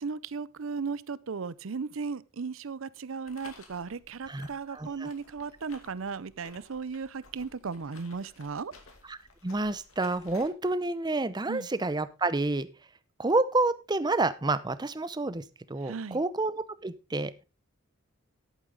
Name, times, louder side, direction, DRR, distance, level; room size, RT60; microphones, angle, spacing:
voice 1, 0.0-8.7 11.5-11.7 15.8-16.2, right 5 dB, 70° right, 0.6 m, -36 dB
sound 1, 3.3-10.5, left 3 dB, 80° left, 2.5 m, -54 dB
voice 2, 4.3-5.1 9.1-9.2 9.4-12.7 13.2-17.4, right 2 dB, 20° right, 0.6 m, -29 dB
11.5 x 8.6 x 3.8 m
head